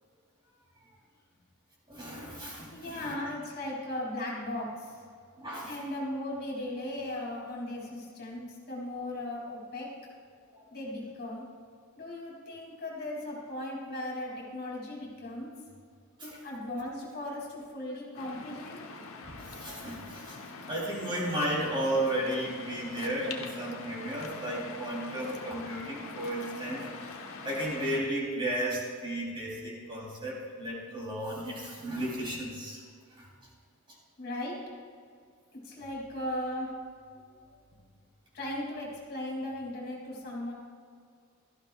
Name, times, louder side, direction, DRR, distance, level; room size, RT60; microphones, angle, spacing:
voice 1, 1.9-3.3 5.4-5.8 10.5-10.6 16.2-16.4 19.2-20.4 20.7-32.8 33.1-33.3, right 1 dB, 25° right, -5 dB, 3.5 m, -34 dB
voice 2, 2.7-5.0 5.7-9.9 10.7-11.4 12.0-15.5 16.2-18.8 34.2-34.6 35.6-36.7 38.3-40.5, left 1 dB, 45° left, -3 dB, 2.9 m, -37 dB
Waves surf, 18.2-28.0, left 4 dB, 70° left, 1.1 m, -44 dB
17.0 x 13.5 x 2.4 m, 2.1 s
head